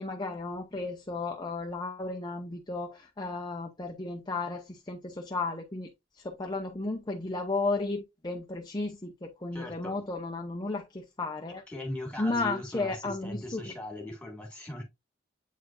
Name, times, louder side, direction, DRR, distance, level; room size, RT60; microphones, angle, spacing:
voice 1, 0.0-5.9 6.2-11.6 12.2-13.7, left 3 dB, 25° left, 0.8 m, -34 dB
voice 2, 9.5-10.0 11.7-14.8, left 1 dB, 5° left, 2.5 m, -39 dB
8.2 x 4.4 x 2.6 m
head